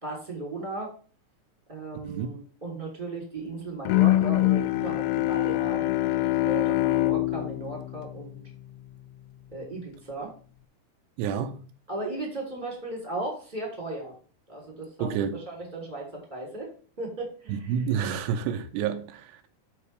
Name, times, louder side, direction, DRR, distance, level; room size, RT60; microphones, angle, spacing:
voice 1, 0.0-0.9 1.7-8.4 9.5-10.3 11.9-14.1 14.5-16.7 17.0-17.7, right 2 dB, 15° right, 2.7 m, -36 dB
Bowed string instrument, 3.9-8.9, left 16 dB, 85° left, 2.7 m, -25 dB
voice 2, 11.2-11.7 15.0-15.4 17.5-19.4, right 8 dB, 90° right, 2.7 m, -29 dB
11.5 x 4.9 x 3.3 m
omnidirectional pair, 4.8 m